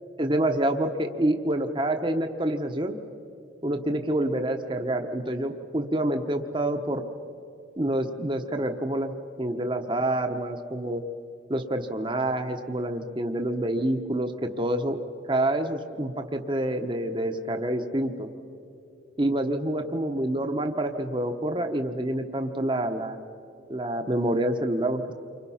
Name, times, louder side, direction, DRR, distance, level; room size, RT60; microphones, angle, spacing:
voice 1, 0.2-3.0 3.6-7.0 7.8-9.1 9.4-11.0 11.5-15.0 15.3-18.3 19.2-23.2 23.7-25.1, right 1 dB, 25° right, 5 dB, 0.9 m, -27 dB
29.0 x 24.5 x 5.7 m, 2.6 s
head